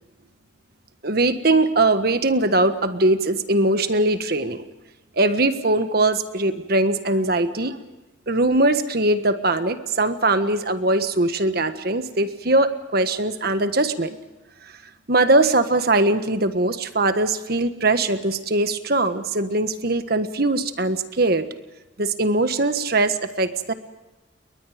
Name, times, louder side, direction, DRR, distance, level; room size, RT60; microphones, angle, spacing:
voice 1, 1.0-4.6 5.2-7.8 8.3-14.2 15.1-21.5 22.0-23.7, right 2 dB, 55° right, 9 dB, 1.5 m, -21 dB
29.5 x 22.5 x 5.1 m, 1.0 s
head